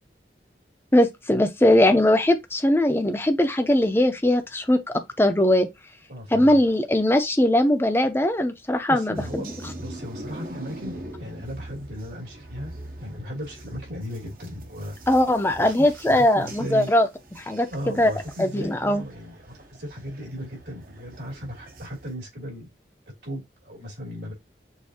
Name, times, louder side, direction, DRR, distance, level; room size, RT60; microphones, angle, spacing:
voice 1, 0.9-5.7 6.3-9.4 15.1-17.1 17.4-18.1 18.4-19.0, left 1 dB, 15° left, 0.6 m, -20 dB
voice 2, 6.1-6.6 8.9-9.5 9.8-12.7 13.0-15.0 15.6-16.9 17.7-22.7 23.2-24.3, equal, 80° right, 2.9 m, -36 dB
sound 1, 9.1-22.1, right 1 dB, 50° right, 0.8 m, -42 dB
6.5 x 2.6 x 2.8 m
head